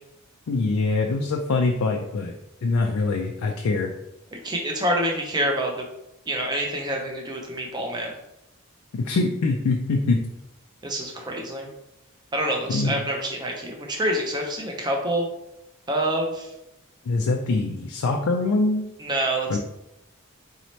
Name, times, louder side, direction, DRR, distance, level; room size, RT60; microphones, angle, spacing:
voice 1, 0.5-2.3 2.6-3.9 8.9-10.2 12.7-12.9 17.1-18.9 19.5-19.6, left 3 dB, 75° left, 2 dB, 0.4 m, -23 dB
voice 2, 4.3-5.8 6.3-8.1 10.8-11.7 12.3-15.3 15.9-16.5 19.0-19.5, right 1 dB, 20° right, 1 dB, 0.6 m, -26 dB
4.1 x 2.8 x 3.1 m, 0.87 s
head